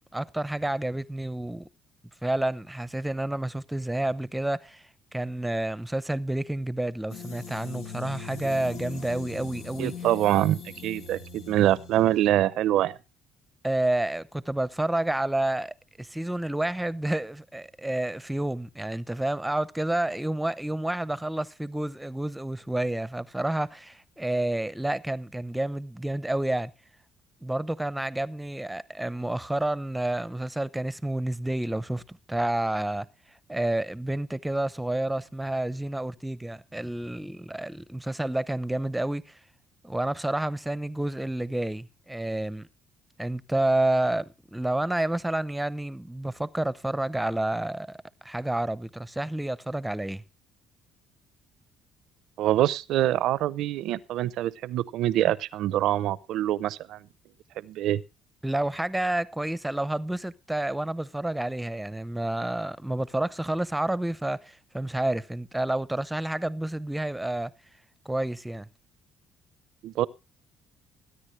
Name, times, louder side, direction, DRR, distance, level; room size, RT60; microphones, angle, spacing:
voice 1, 0.1-1.7 2.2-4.8 5.1-9.9 13.6-26.7 27.4-33.1 33.5-39.3 39.8-42.7 43.2-48.0 48.2-50.2 58.4-67.5 68.0-68.7, right 1 dB, 5° right, 0.7 m, -29 dB
sound 1, 7.1-12.3, left 5 dB, 90° left, 1.6 m, -41 dB
voice 2, 9.8-13.0 52.4-57.0 57.6-58.0 69.8-70.1, right 13 dB, 75° right, 0.6 m, -25 dB
21.5 x 9.7 x 3.2 m
cardioid pair, 90°, 0 cm